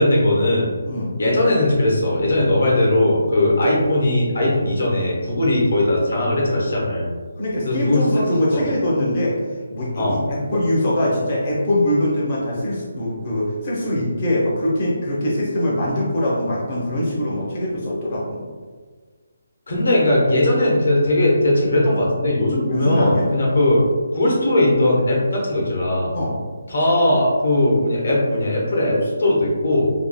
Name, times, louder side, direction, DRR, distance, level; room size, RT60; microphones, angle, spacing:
voice 1, 0.0-0.7 1.2-7.1 7.6-8.2 8.5-8.6 10.0-10.2 19.7-23.8 24.1-26.1 26.7-29.9, left 1 dB, 65° left, -3 dB, 1.0 m, -18 dB
voice 2, 0.8-1.1 7.4-18.4 22.6-23.3 26.1-26.4, left 1 dB, 35° left, -5 dB, 0.8 m, -23 dB
3.5 x 2.4 x 2.2 m, 1.5 s
hypercardioid pair, 175°, 0 cm